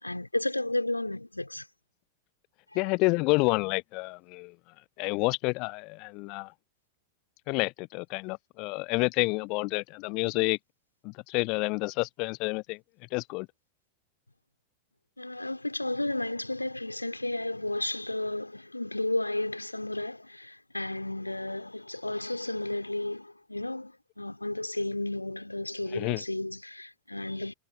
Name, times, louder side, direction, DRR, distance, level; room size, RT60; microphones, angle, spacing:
voice 1, 0.0-1.7 2.7-2.8 15.2-27.5, left 2 dB, 85° left, 3.9 m, -33 dB
voice 2, 2.8-4.5 5.0-6.5 7.5-10.6 11.0-12.8 13.1-13.5 25.9-26.2, left 28 dB, 45° left, 0.3 m, -29 dB
figure-of-eight pair, 90°, 0 cm